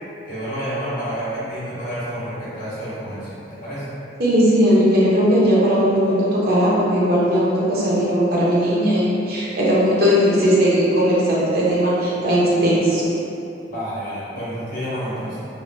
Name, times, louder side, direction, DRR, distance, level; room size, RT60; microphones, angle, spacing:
voice 1, 0.2-3.9 13.7-15.5, equal, 55° left, -11 dB, 1.2 m, -29 dB
voice 2, 4.2-13.0, equal, 60° right, -7 dB, 0.6 m, -18 dB
3.6 x 2.1 x 2.5 m, 2.8 s
head